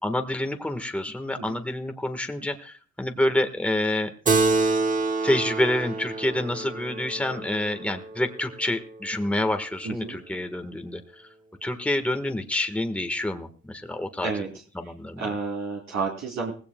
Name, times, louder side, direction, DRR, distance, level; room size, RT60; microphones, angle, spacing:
voice 1, 0.0-4.1 5.2-11.0 11.6-14.3 14.7-15.3, left 1 dB, 5° left, 6 dB, 1.3 m, -27 dB
Keyboard (musical), 4.3-9.1, right 3 dB, 25° right, 1.2 m, -27 dB
voice 2, 9.8-10.2 14.2-14.5 15.2-16.5, right 4 dB, 65° right, 0 dB, 3.1 m, -30 dB
18.5 x 16.5 x 2.2 m, 0.39 s
cardioid pair, 90°, 30 cm